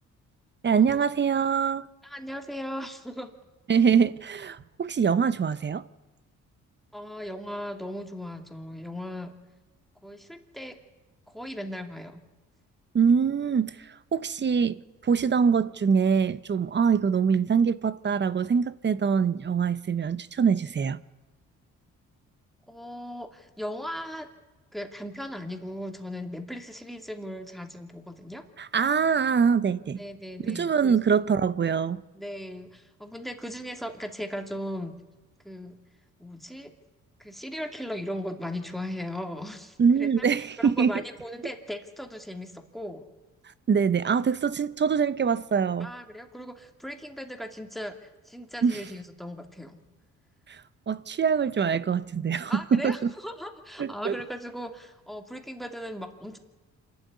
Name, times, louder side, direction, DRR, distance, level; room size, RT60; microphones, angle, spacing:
voice 1, 0.6-1.9 3.7-5.8 12.9-21.0 28.6-30.0 30.4-32.0 39.8-40.9 43.7-45.9 48.6-48.8 50.5-50.6 50.9-53.0 53.8-54.1, right 6 dB, 35° right, 0.9 m, -24 dB
voice 2, 2.0-3.3 6.9-9.3 10.0-10.8 11.3-12.2 22.7-24.3 24.7-28.4 30.0-31.0 32.1-35.0 35.4-35.8 36.2-36.7 37.2-43.0 45.8-49.8 52.5-56.4, equal, ahead, 2.6 m, -38 dB
27.0 x 12.5 x 9.6 m
cardioid pair, 90°, 30 cm